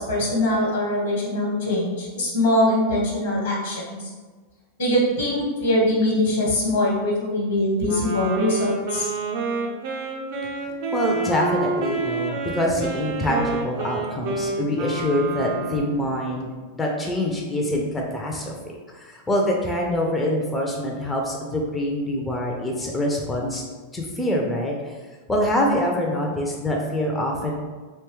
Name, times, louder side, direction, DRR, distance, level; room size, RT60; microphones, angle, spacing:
voice 1, 0.0-4.0 4.8-9.1, left 1 dB, 70° left, -4 dB, 1.0 m, -22 dB
Wind instrument woodwind instrument, 7.8-16.1, right 3 dB, 55° right, 0.5 m, -29 dB
voice 2, 10.9-16.5 16.7-18.5 18.9-23.6 23.9-24.9 25.3-27.5, left 1 dB, 15° left, -1 dB, 0.4 m, -25 dB
2.9 x 2.2 x 3.0 m, 1.4 s
figure-of-eight pair, 95°, 0 cm